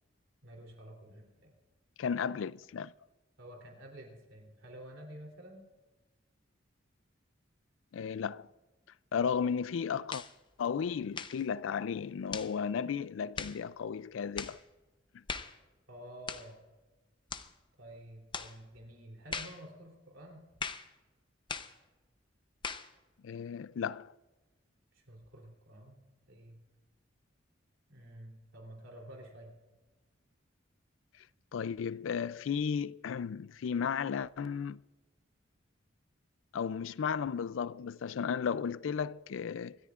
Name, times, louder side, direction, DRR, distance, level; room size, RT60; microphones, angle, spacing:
voice 1, 0.4-1.5 3.4-5.6 15.9-16.6 17.8-20.4 24.9-26.0 26.3-26.6 27.9-29.5, right 1 dB, 85° right, 3.3 m, -50 dB
voice 2, 2.0-2.9 7.9-8.5 9.1-10.2 10.6-14.6 15.1-15.2 23.2-24.1 31.5-34.8 36.5-39.8, left 7 dB, 80° left, 0.4 m, -34 dB
sound 1, 10.1-10.3 11.1-11.4 12.3-12.5 13.4-13.6 14.4-14.6 15.3-15.6 16.3-16.5 17.3-17.5 18.3-18.6 19.3-19.6 20.6-20.9 21.5-21.8 22.6-22.9, left 5 dB, 25° left, 0.7 m, -39 dB
26.0 x 13.5 x 2.4 m
head